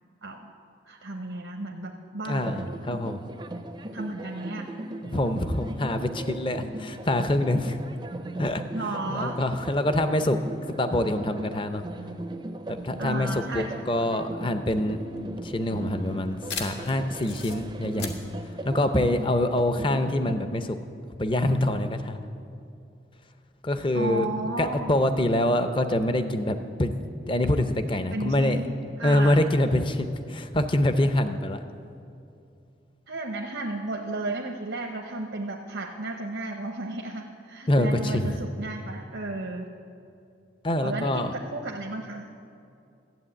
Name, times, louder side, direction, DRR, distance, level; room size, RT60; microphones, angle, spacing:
voice 1, 0.2-0.5 0.9-3.0 3.9-4.7 8.7-9.4 13.0-13.7 14.0-14.1 23.9-24.9 28.1-29.5 33.1-39.7 40.8-42.3, right 2 dB, 85° right, 2 dB, 0.9 m, -33 dB
voice 2, 2.3-3.2 5.0-7.8 8.4-8.6 9.1-11.8 12.7-15.0 15.4-18.1 18.4-20.8 21.2-22.2 23.6-24.3 24.6-27.0 27.3-28.6 29.0-31.6 37.7-38.4 40.6-41.3, left 1 dB, 25° left, 9 dB, 0.6 m, -25 dB
sound 1, 2.4-20.3, right 1 dB, 25° right, 0.5 m, -38 dB
sound 2, 14.6-19.7, left 5 dB, 70° left, 1.5 m, -40 dB
12.5 x 7.9 x 8.9 m, 2.6 s
head